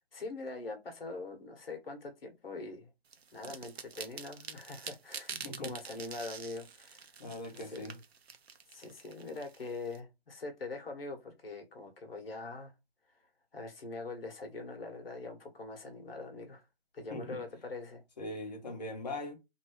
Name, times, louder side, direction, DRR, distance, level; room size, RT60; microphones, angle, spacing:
voice 1, 0.1-2.9 3.3-7.1 7.6-7.9 8.7-12.7 13.5-16.6 16.9-18.0, left 3 dB, 65° left, 1.2 m, -43 dB
sound 1, 3.1-10.0, right 6 dB, 80° right, 0.7 m, -46 dB
voice 2, 5.4-5.8 7.2-8.0 17.1-17.4 18.2-19.4, left 2 dB, 40° left, 1.0 m, -40 dB
2.8 x 2.7 x 3.0 m
hypercardioid pair, 170°, 31 cm